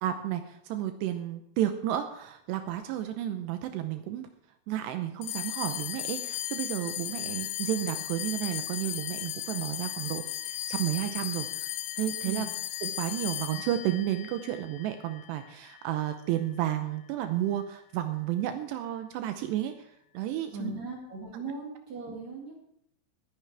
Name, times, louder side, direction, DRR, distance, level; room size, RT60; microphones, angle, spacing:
voice 1, 0.0-4.3 4.7-11.7 12.0-12.5 12.8-19.9 20.1-20.7 21.3-21.4, right 12 dB, 85° right, 8 dB, 2.4 m, -32 dB
sound 1, 5.2-15.9, left 13 dB, 80° left, 2.7 m, -36 dB
voice 2, 20.5-22.6, right 3 dB, 45° right, -2 dB, 2.7 m, -38 dB
20.5 x 9.2 x 3.4 m, 0.73 s
omnidirectional pair, 5.8 m